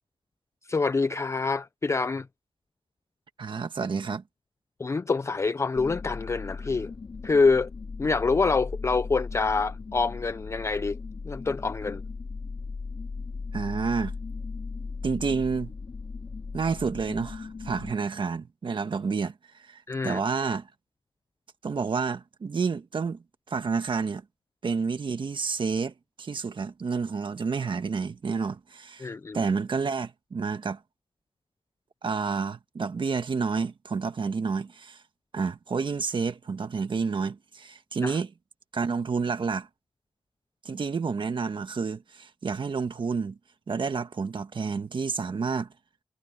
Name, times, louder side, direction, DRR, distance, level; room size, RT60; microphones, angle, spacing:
voice 1, 0.7-2.3 4.8-6.9 7.2-7.7 8.0-11.0 11.2-12.0 19.9-20.2 29.0-29.4 38.0-38.2, left 4 dB, 30° left, 0.4 m, -26 dB
voice 2, 3.4-4.2 13.5-14.1 15.0-15.7 16.5-19.3 19.6-20.7 21.6-24.2 24.6-29.1 29.3-30.8 32.0-35.0 35.3-38.3 38.7-39.7 40.6-43.4 43.7-45.7, right 5 dB, 60° right, 1.5 m, -29 dB
sound 1, 5.8-17.9, left 4 dB, 50° left, 2.3 m, -37 dB
wide cardioid pair, 130°, 10 cm